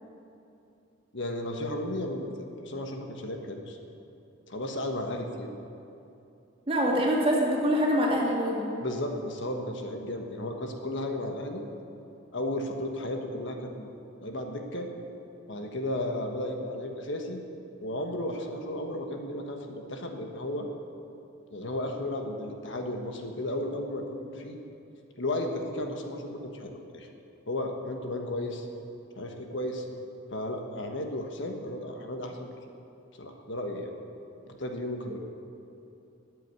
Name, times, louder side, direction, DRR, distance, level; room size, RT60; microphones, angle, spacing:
voice 1, 1.1-3.8 4.5-5.5 8.8-11.6 12.3-13.9 14.2-14.9 15.5-17.4 17.8-20.7 21.5-24.6 25.2-27.1 27.5-28.7 29.2-29.8 30.3-32.5 33.2-33.9 34.5-35.2, left 1 dB, 65° left, 3 dB, 1.4 m, -34 dB
voice 2, 6.7-8.7 35.1-35.2, equal, 30° right, -3 dB, 2.6 m, -25 dB
13.0 x 8.4 x 9.5 m, 2.7 s
head